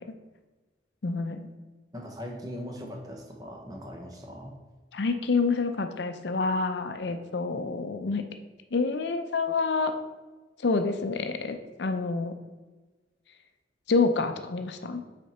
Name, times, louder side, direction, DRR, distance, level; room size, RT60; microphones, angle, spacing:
voice 1, 1.0-1.5 4.9-8.2 8.7-9.9 10.6-12.3 13.9-15.0, left 4 dB, 70° left, 7 dB, 0.5 m, -27 dB
voice 2, 1.9-4.6, equal, 20° right, 2 dB, 0.8 m, -40 dB
6.5 x 4.3 x 4.3 m, 1.2 s
head